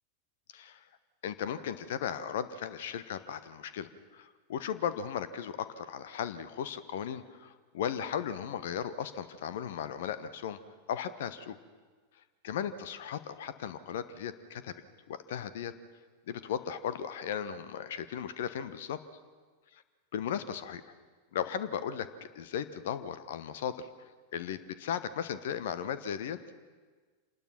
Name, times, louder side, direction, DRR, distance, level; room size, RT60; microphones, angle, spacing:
voice 1, 0.5-0.8 1.2-10.6 10.9-11.6 12.4-14.7 15.1-15.7 16.3-19.0 20.1-20.9 21.3-23.9 24.3-26.4, left 8 dB, 55° left, 14 dB, 1.1 m, -36 dB
26.0 x 19.5 x 5.9 m, 1.4 s
figure-of-eight pair, 90°, 0 cm